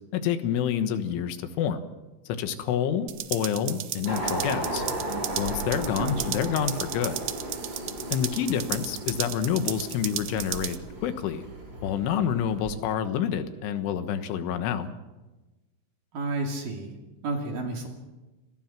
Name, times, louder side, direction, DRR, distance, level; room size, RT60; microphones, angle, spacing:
voice 1, 0.1-1.9 2.3-4.8 5.4-7.2 8.1-11.5 11.8-14.9, left 8 dB, 75° left, 9 dB, 3.7 m, -28 dB
sound 1, 3.1-10.8, right 12 dB, 70° right, 2.7 m, -35 dB
sound 2, 4.1-12.7, right 1 dB, 25° right, 4.6 m, -35 dB
voice 2, 16.1-16.9 17.2-17.9, right 3 dB, 50° right, 2 dB, 3.6 m, -30 dB
28.0 x 20.0 x 6.0 m, 1.1 s
omnidirectional pair, 5.7 m